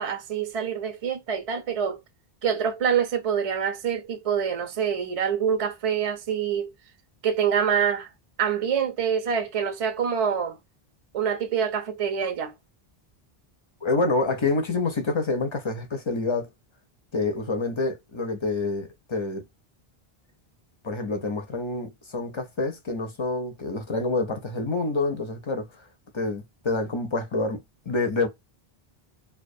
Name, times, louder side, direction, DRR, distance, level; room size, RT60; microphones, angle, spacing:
voice 1, 0.0-2.0 2.4-6.7 7.2-8.1 8.4-10.6 11.1-12.5, right 7 dB, 50° right, 0.5 m, -26 dB
voice 2, 13.8-16.5 17.1-19.4 20.8-25.7 26.1-28.3, left 3 dB, 45° left, 0.4 m, -27 dB
2.3 x 2.2 x 2.6 m
omnidirectional pair, 1.0 m